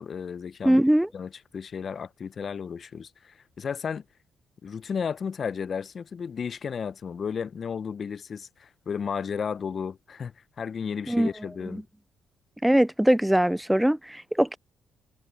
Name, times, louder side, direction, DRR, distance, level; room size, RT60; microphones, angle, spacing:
voice 1, 0.0-0.8 1.1-4.0 4.6-11.8, left 6 dB, 50° left, 0.7 m, -33 dB
voice 2, 0.6-1.1 11.1-11.3 11.7-11.8 12.6-14.6, right 1 dB, 5° right, 0.4 m, -21 dB
supercardioid pair, 60°, 0 cm